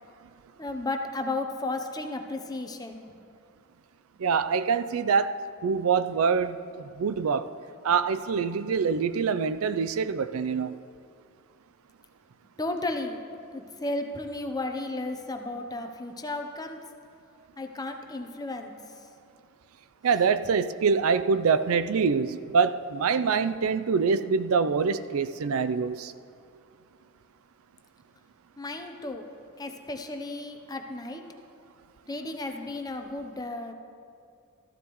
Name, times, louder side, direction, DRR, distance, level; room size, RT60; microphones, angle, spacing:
voice 1, 0.6-3.2 12.6-13.2 13.5-16.8 17.6-18.7 28.6-29.2 29.6-31.2 32.1-33.7, left 2 dB, 20° left, 5 dB, 0.7 m, -34 dB
voice 2, 4.2-7.5 7.8-10.7 20.0-26.1, right 5 dB, 75° right, 12 dB, 0.4 m, -25 dB
14.0 x 12.5 x 3.1 m, 2.4 s
head